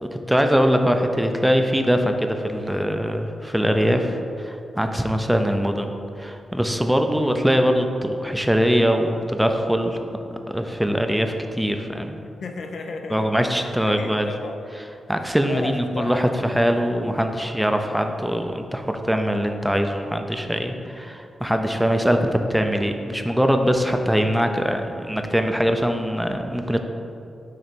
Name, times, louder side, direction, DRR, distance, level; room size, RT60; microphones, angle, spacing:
voice 1, 0.0-5.9 6.2-10.0 10.5-12.2 13.1-14.3 15.1-26.8, equal, 5° right, 5 dB, 0.5 m, -22 dB
voice 2, 12.4-14.6 15.4-16.2 20.7-21.0, left 3 dB, 75° left, 3 dB, 0.6 m, -35 dB
6.5 x 3.3 x 6.1 m, 2.5 s
cardioid pair, 95°, 0 cm